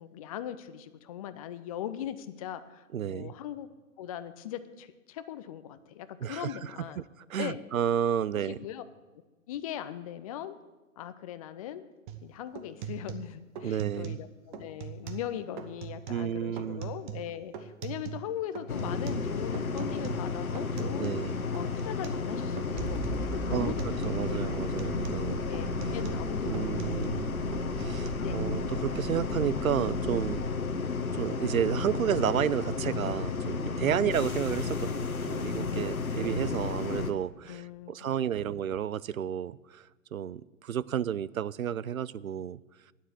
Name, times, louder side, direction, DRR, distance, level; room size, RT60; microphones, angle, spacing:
voice 1, 0.0-3.7 4.0-7.0 7.4-7.6 8.4-8.8 9.5-10.6 11.0-11.8 12.2-21.1 21.5-24.6 25.4-27.3 28.2-28.4 34.1-34.2 37.5-38.6, left 11 dB, 25° left, 12 dB, 0.5 m, -40 dB
voice 2, 2.9-3.3 6.2-8.6 13.6-14.2 16.1-16.9 21.0-21.5 23.5-23.7 24.0-25.5 25.9-26.0 26.4-27.3 27.8-30.4 31.1-42.6, right 9 dB, 75° right, 20 dB, 0.5 m, -31 dB
sound 1, 12.1-12.3 12.6-14.3 14.5-15.3 15.6-16.3 16.6-18.3 18.6-21.3 21.5-22.3 22.6-23.3 23.5-24.2 24.5-27.3 27.5-28.1, right 9 dB, 35° right, 1.1 m, -41 dB
sound 2, 18.7-37.1, left 4 dB, 80° left, 1.0 m, -32 dB
sound 3, 22.7-30.5, right 2 dB, 5° right, 3.3 m, -40 dB
9.5 x 8.0 x 9.5 m, 1.2 s
figure-of-eight pair, 115°, 42 cm